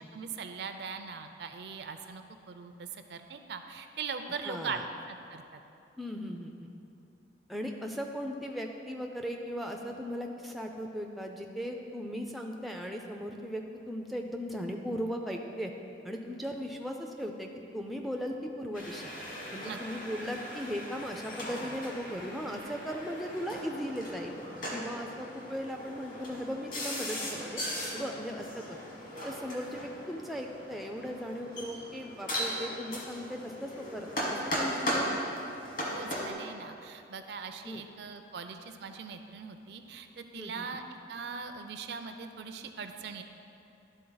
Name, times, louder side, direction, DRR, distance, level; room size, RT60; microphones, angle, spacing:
voice 1, 0.1-4.8 5.1-5.6 19.6-19.8 35.9-40.8 41.1-43.2, right 5 dB, 65° right, 7 dB, 0.4 m, -41 dB
voice 2, 4.4-4.8 6.0-6.7 7.5-15.7 16.0-17.5 17.7-19.0 19.5-24.4 24.7-27.6 27.9-28.8 29.2-35.2 37.6-37.8 40.4-40.7, equal, ahead, 2 dB, 0.3 m, -37 dB
sound 1, 18.7-36.3, equal, 45° left, 1.3 m, -38 dB
11.5 x 3.9 x 3.9 m, 2.7 s
head